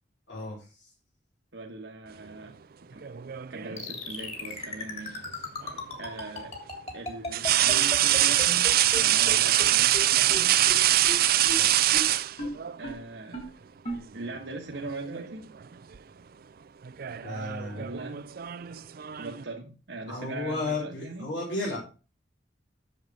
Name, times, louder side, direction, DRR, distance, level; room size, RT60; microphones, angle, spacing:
voice 1, 0.3-0.9 11.5-11.7 17.2-17.9 20.1-21.8, left 2 dB, 80° left, 3.6 m, -34 dB
voice 2, 1.5-2.6 2.9-3.0 3.5-5.2 6.0-6.6 6.9-10.7 12.8-13.5 14.1-15.5 17.4-17.5 17.7-18.2 19.2-21.3, right 2 dB, 70° right, 1.4 m, -40 dB
sound 1, 3.0-3.9 5.6-5.8 7.3-12.8 14.0-14.2 14.6-15.3 15.6-16.0 16.8-19.4, right 13 dB, 55° right, 0.4 m, -24 dB
sound 2, 3.8-9.0 9.3-9.4 9.6-9.7 9.9-10.0 10.3-10.4 10.7-10.8 11.0-11.1 11.4-11.5 11.9-12.0 12.4-12.5 12.8-12.9 13.3-13.4 13.8-14.0, left 2 dB, 35° left, 2.9 m, -34 dB
7.8 x 7.2 x 5.4 m
head